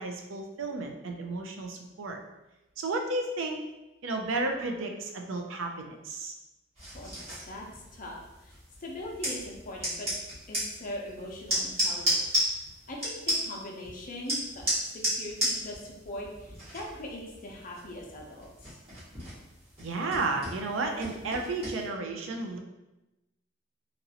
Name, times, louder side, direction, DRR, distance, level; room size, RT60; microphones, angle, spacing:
voice 1, 0.0-2.2 2.8-3.6 4.0-6.3 19.8-22.6, right 3 dB, 85° right, 3 dB, 0.4 m, -32 dB
sound 1, 6.8-21.9, equal, 35° right, 1.3 m, -34 dB
voice 2, 7.5-8.5 8.8-10.1 10.5-12.2 12.9-18.8, left 1 dB, 45° left, -1 dB, 0.6 m, -41 dB
2.9 x 2.5 x 2.8 m, 0.99 s
head